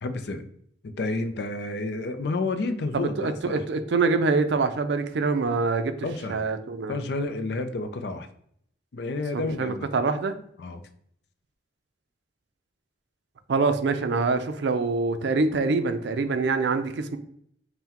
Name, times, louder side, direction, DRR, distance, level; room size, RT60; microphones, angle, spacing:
voice 1, 0.0-0.4 0.8-3.6 6.0-6.4 6.9-8.3 8.9-9.9 10.6-10.8, left 3 dB, 60° left, 0.4 m, -30 dB
voice 2, 2.9-5.9 6.3-6.9 9.3-10.4 13.5-17.2, right 4 dB, 70° right, 0.4 m, -25 dB
5.6 x 2.2 x 2.8 m
head